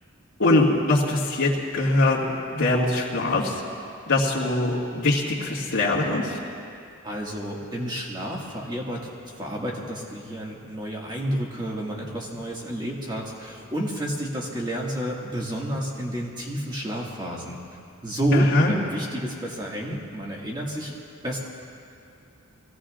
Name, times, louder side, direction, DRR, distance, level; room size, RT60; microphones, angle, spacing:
voice 1, 0.4-3.6 4.1-6.4 18.3-18.7, left 2 dB, 80° left, -11 dB, 2.1 m, -22 dB
voice 2, 7.0-9.1 9.4-17.6 18.0-20.9 21.2-21.4, equal, 20° right, -3 dB, 2.0 m, -30 dB
24.5 x 17.0 x 2.5 m, 2.6 s
head